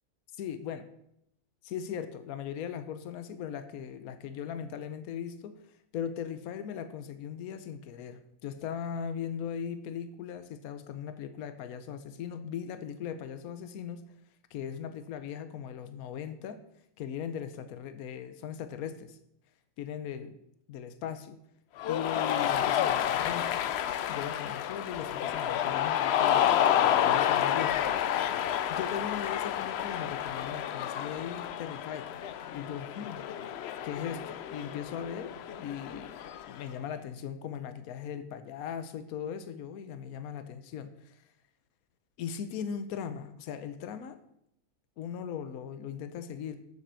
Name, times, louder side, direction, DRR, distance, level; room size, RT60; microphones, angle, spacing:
voice 1, 0.4-0.9 1.6-5.6 5.9-14.0 14.5-16.6 17.0-19.2 19.8-20.3 20.7-21.4 21.9-23.6 24.1-28.1 28.7-32.1 32.5-33.2 33.8-36.2 36.5-41.3 42.2-44.2 45.0-46.6, left 8 dB, 85° left, 10 dB, 1.1 m, -39 dB
Cheering, 21.8-36.6, left 10 dB, 65° left, 0.6 m, -30 dB
7.5 x 6.7 x 6.8 m, 0.75 s
omnidirectional pair, 1.5 m